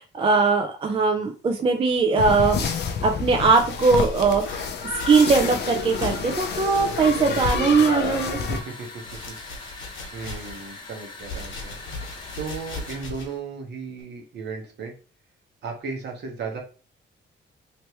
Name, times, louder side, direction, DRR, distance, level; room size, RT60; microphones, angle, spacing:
voice 1, 0.0-2.6 3.0-4.7 5.1-8.4, right 4 dB, 25° right, 3 dB, 0.4 m, -20 dB
sound 1, 2.2-8.6, left 5 dB, 55° left, 0.6 m, -28 dB
sound 2, 3.5-6.3 6.6-8.5 8.8-10.8 11.2-13.4 14.0-14.1, left 2 dB, 90° left, 1.4 m, -39 dB
sound 3, 4.7-13.1, left 2 dB, 25° left, 0.8 m, -43 dB
voice 2, 8.5-8.9 9.3-9.4 10.1-12.1 12.3-14.9 15.6-16.6, right 5 dB, 60° right, 2 dB, 1.1 m, -35 dB
3.2 x 3.0 x 2.9 m, 0.34 s
wide cardioid pair, 180°, 20 cm